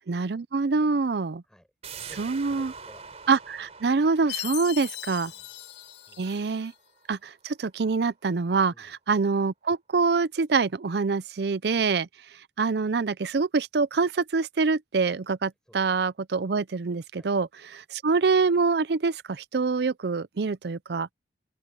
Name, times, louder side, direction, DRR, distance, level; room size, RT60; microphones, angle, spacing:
voice 1, 0.1-1.4 2.2-2.7 3.3-5.3 6.2-6.7 7.1-12.1 12.6-21.1, right 4 dB, 60° right, 0.5 m, -25 dB
voice 2, 1.4-3.0 5.2-5.5 6.0-6.3 8.7-8.9 15.6-16.1 17.1-17.3, equal, 5° left, 6.6 m, -56 dB
sound 1, 1.8-7.3 7.7-7.8, right 5 dB, 35° right, 4.4 m, -46 dB
Chime, 4.3-6.7, left 16 dB, 65° left, 0.6 m, -38 dB
open air
head